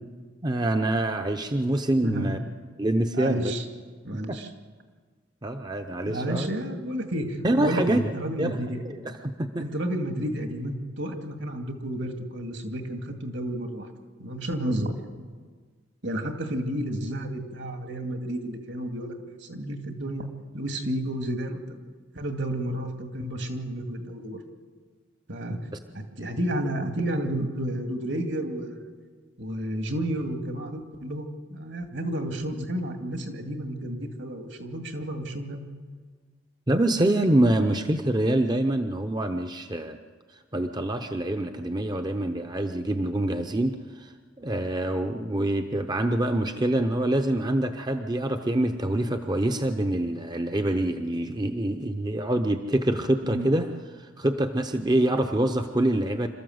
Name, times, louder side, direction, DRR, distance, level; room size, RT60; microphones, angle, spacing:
voice 1, 0.4-2.4 2.8-3.5 4.3-4.4 5.4-6.5 7.4-8.0 8.4-8.6 8.8-9.7 36.7-40.0 40.5-56.3, right 1 dB, 20° right, 6 dB, 0.7 m, -25 dB
voice 2, 2.0-2.4 3.1-3.6 4.0-4.5 6.1-8.8 9.6-13.9 14.2-15.1 16.0-19.2 19.4-20.3 20.5-21.8 22.1-24.4 25.3-25.6 25.9-28.9 29.4-35.6 53.2-53.5, right 1 dB, 65° right, 5 dB, 2.3 m, -31 dB
27.0 x 13.5 x 7.9 m, 1.5 s
head